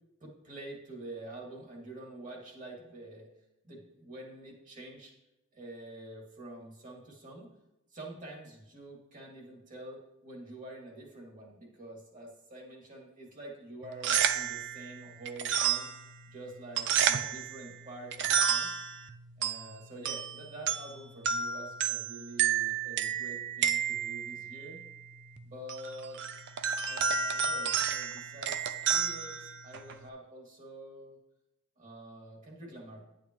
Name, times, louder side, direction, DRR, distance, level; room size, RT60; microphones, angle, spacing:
voice 1, 0.2-3.3 3.6-5.1 5.5-7.5 7.9-15.9 16.3-18.7 19.4-24.8 25.4-26.2 26.9-31.2 31.8-33.1, right 1 dB, 35° right, -1 dB, 2.3 m, -47 dB
sound 1, 13.8-30.1, right 7 dB, 55° right, 0.5 m, -32 dB
10.0 x 8.8 x 3.1 m, 0.92 s
head